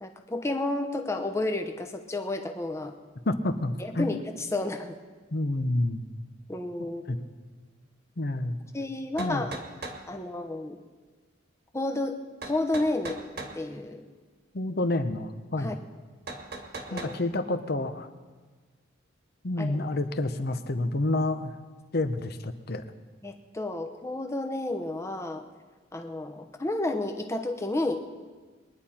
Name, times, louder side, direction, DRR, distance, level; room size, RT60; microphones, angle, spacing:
voice 1, 0.0-2.9 3.8-5.0 6.5-7.2 8.7-9.6 10.1-10.8 11.7-13.2 13.5-14.1 15.6-15.8 16.9-17.1 19.6-20.0 23.2-25.4 25.9-28.0, left 2 dB, 15° left, 5 dB, 0.9 m, -31 dB
voice 2, 3.3-4.1 5.3-6.0 7.1-7.2 8.2-8.6 9.2-9.4 14.5-15.8 16.9-18.1 19.4-21.5 21.9-22.8, left 2 dB, 55° left, 9 dB, 0.8 m, -29 dB
sound 1, 8.7-8.8 9.2-10.0 12.4-13.6 16.3-17.2, right 3 dB, 55° right, 1.5 m, -38 dB
22.0 x 10.5 x 4.3 m, 1.4 s
head